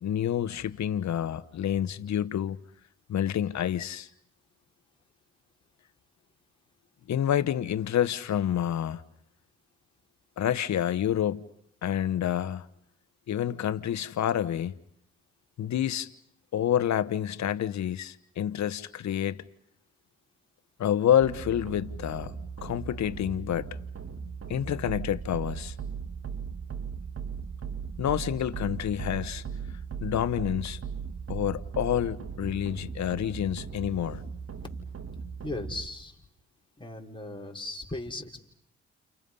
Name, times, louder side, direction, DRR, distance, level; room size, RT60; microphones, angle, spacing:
voice 1, 0.0-2.6 3.1-4.1 7.1-9.0 10.4-11.5 11.8-12.7 13.3-14.7 15.6-16.1 16.5-19.4 20.8-22.3 22.6-23.7 24.5-25.7 28.0-29.4 30.0-30.8 31.3-34.2, left 10 dB, 70° left, 1.1 m, -28 dB
sound 1, 21.2-35.9, right 6 dB, 50° right, 2.0 m, -38 dB
voice 2, 35.4-36.2 36.8-38.4, left 2 dB, 15° left, 4.9 m, -37 dB
30.0 x 30.0 x 5.6 m
supercardioid pair, 60°, 29 cm